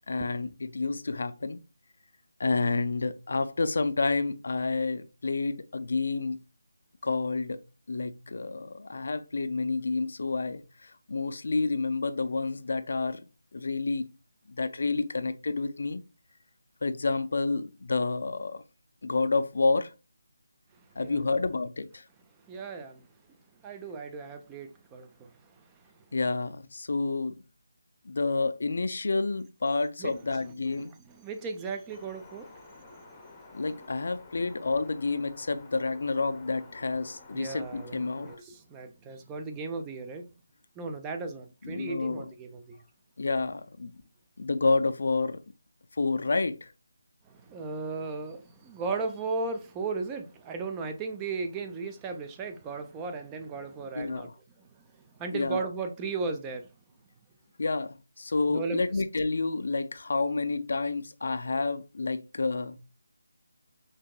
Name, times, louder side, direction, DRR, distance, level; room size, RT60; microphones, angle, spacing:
voice 1, 0.1-1.6 2.4-6.4 7.0-13.2 13.5-14.1 14.5-16.0 16.8-18.6 19.0-19.9 21.0-22.0 26.1-27.3 28.1-30.9 33.5-38.3 41.6-42.3 43.2-43.9 44.4-45.4 46.0-46.7 54.0-54.3 55.3-55.6 57.6-62.8, left 3 dB, 60° left, 0.4 m, -29 dB
voice 2, 22.5-23.1 23.6-25.3 30.0-30.1 31.1-33.0 37.3-40.3 40.8-42.8 47.3-54.3 55.2-56.7 58.5-58.8, right 4 dB, 15° right, 0.4 m, -36 dB
sound 1, 31.9-38.4, left 3 dB, 15° left, 0.7 m, -51 dB
5.6 x 2.6 x 2.2 m
figure-of-eight pair, 160°, 0 cm